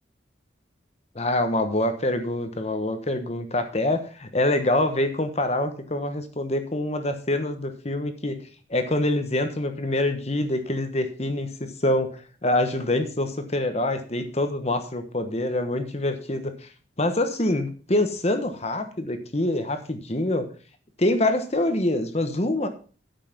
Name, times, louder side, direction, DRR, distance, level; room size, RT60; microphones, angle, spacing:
voice 1, 1.1-8.4 8.7-16.5 17.0-20.5 21.0-22.7, left 1 dB, 35° left, 8 dB, 1.1 m, -25 dB
9.0 x 7.4 x 5.9 m, 0.38 s
head